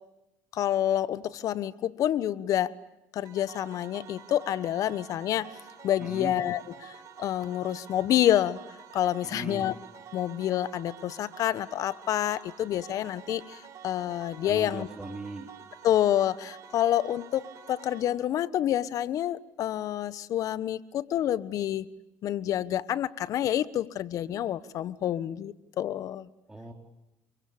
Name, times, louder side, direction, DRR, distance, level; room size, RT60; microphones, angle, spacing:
voice 1, 0.5-2.7 3.1-5.5 5.8-8.6 8.9-9.7 10.1-14.9 15.8-21.9 22.2-26.3, left 11 dB, 60° left, 17 dB, 1.3 m, -28 dB
sound 1, 3.2-18.0, right 7 dB, 55° right, 5.0 m, -48 dB
voice 2, 6.0-6.3 9.2-9.7 14.4-15.5 26.5-26.7, right 2 dB, 10° right, 2 dB, 4.0 m, -39 dB
28.0 x 23.5 x 8.7 m, 0.91 s
supercardioid pair, 90°, 7 cm